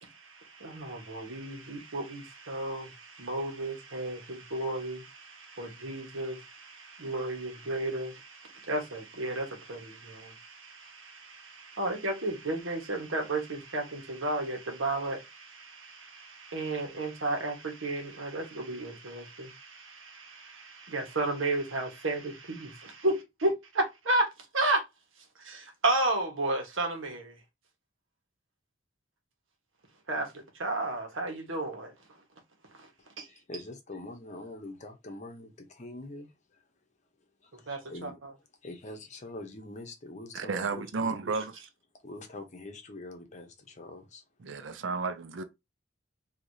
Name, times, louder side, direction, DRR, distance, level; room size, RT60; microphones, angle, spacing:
voice 1, 0.0-24.3 24.5-24.8 25.4-27.4 30.1-31.9 33.2-33.3 37.7-38.3, right 2 dB, 90° right, 1.3 m, -33 dB
voice 2, 33.3-36.3 37.4-38.2 38.6-41.2 42.0-44.2, left 2 dB, 35° left, 0.8 m, -44 dB
voice 3, 40.3-41.5 44.4-45.4, right 4 dB, 70° right, 0.5 m, -32 dB
4.7 x 2.8 x 2.7 m
head